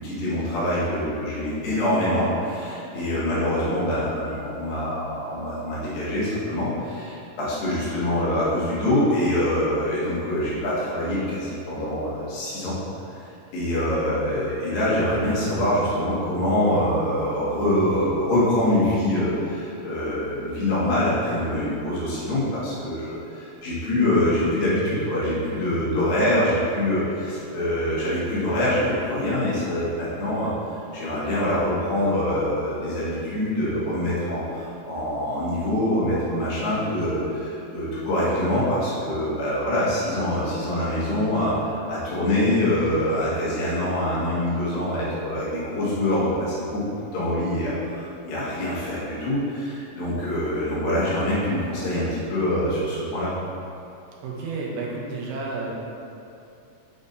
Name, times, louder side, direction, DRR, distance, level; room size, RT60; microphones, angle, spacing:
voice 1, 0.0-12.8 13.5-30.5 30.9-46.8 47.1-53.3, left 1 dB, 85° left, -9 dB, 3.4 m, -24 dB
voice 2, 54.2-55.7, right 3 dB, 80° right, -3 dB, 2.5 m, -31 dB
8.3 x 5.2 x 2.7 m, 2.7 s
omnidirectional pair, 4.0 m